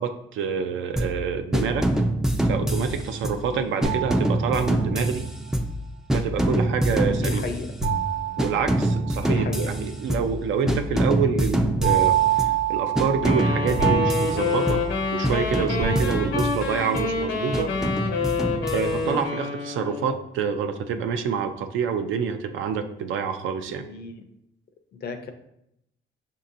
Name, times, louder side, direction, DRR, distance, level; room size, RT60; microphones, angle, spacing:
voice 1, 0.0-1.9 2.4-5.3 6.1-7.4 8.4-14.8 15.1-17.7 18.7-23.9, right 6 dB, 80° right, 8 dB, 0.4 m, -27 dB
sound 1, 1.0-1.2 1.5-3.5 3.8-5.8 6.1-8.0 8.4-10.4 10.7-12.6 13.0-15.0 15.2-17.1 17.5-19.2, right 1 dB, 5° right, 0.3 m, -25 dB
sound 2, 3.8-5.0 7.8-9.4 11.8-15.4 15.8-16.7, right 10 dB, 60° right, 0.9 m, -26 dB
voice 2, 7.1-7.7 9.2-9.7 19.0-19.2 23.7-24.1 24.9-25.3, left 4 dB, 55° left, 7 dB, 0.5 m, -34 dB
sound 3, 13.2-20.2, left 4 dB, 85° left, 1.0 m, -27 dB
5.2 x 2.8 x 2.5 m, 0.78 s
cardioid pair, 90°, 20 cm